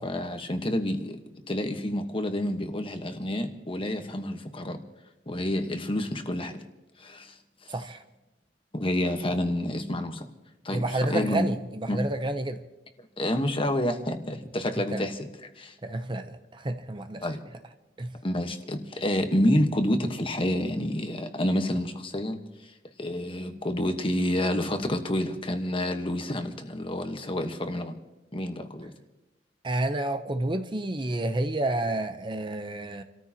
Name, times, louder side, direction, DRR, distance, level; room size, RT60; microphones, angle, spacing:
voice 1, 0.0-4.8 5.3-6.6 7.0-7.4 7.6-7.7 8.7-10.3 10.6-11.5 11.9-12.0 13.2-15.7 17.2-17.4 18.2-22.7 23.0-27.9 28.3-28.9, left 1 dB, 30° left, 6 dB, 1.3 m, -29 dB
voice 2, 7.7-8.0 10.7-12.6 14.9-15.1 15.8-17.3 18.0-18.1 29.6-33.0, right 1 dB, 25° right, 8 dB, 0.7 m, -30 dB
29.0 x 14.0 x 2.9 m, 0.99 s
head